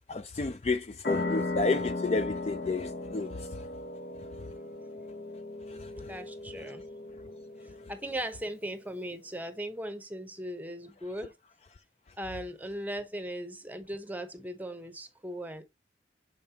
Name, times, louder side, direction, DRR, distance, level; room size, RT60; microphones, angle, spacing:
voice 1, 0.1-3.3, left 3 dB, 35° left, 0.4 m, -30 dB
sound 1, 1.0-8.2, left 2 dB, 60° left, 0.8 m, -37 dB
voice 2, 5.9-6.8 7.9-11.3 12.2-15.6, right 1 dB, 10° right, 0.8 m, -38 dB
6.7 x 5.2 x 2.8 m
head